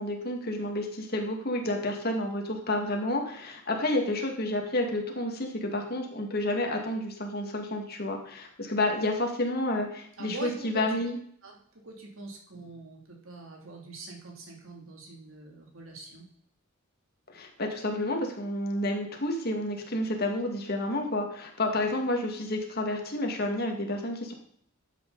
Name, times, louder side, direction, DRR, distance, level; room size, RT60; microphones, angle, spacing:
voice 1, 0.0-11.2 17.3-24.3, left 1 dB, 50° left, 2 dB, 2.1 m, -30 dB
voice 2, 10.2-11.0 11.4-16.3, right 2 dB, 90° right, 0 dB, 2.8 m, -43 dB
12.5 x 8.1 x 4.0 m, 0.63 s
head